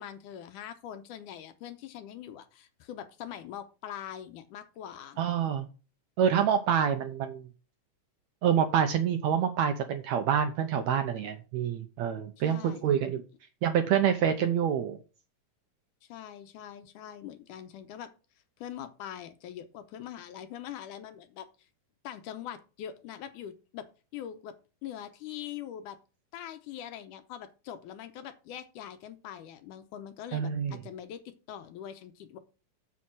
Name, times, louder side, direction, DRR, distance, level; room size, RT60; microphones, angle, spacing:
voice 1, 0.0-5.2 12.4-12.9 16.0-18.1 18.6-21.7 22.0-24.6 24.8-26.0 26.3-32.4, left 10 dB, 75° left, 10 dB, 2.2 m, -43 dB
voice 2, 5.2-5.7 6.2-7.5 8.4-13.2 13.6-15.0 30.3-30.8, right 8 dB, 75° right, 7 dB, 1.7 m, -27 dB
7.1 x 7.0 x 6.1 m, 0.34 s
omnidirectional pair, 3.9 m